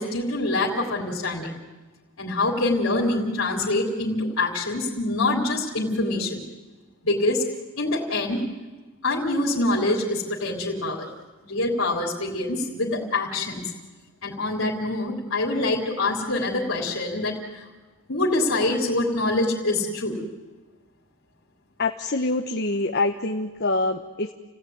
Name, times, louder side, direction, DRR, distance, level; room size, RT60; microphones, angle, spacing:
voice 1, 0.0-1.5 2.2-6.4 7.0-7.4 7.8-8.4 9.0-11.1 11.4-13.7 14.2-17.6 18.1-20.2, left 2 dB, 85° left, -2 dB, 3.6 m, -25 dB
voice 2, 21.8-24.3, left 2 dB, 50° left, 5 dB, 1.0 m, -25 dB
30.0 x 16.5 x 9.4 m, 1.3 s
head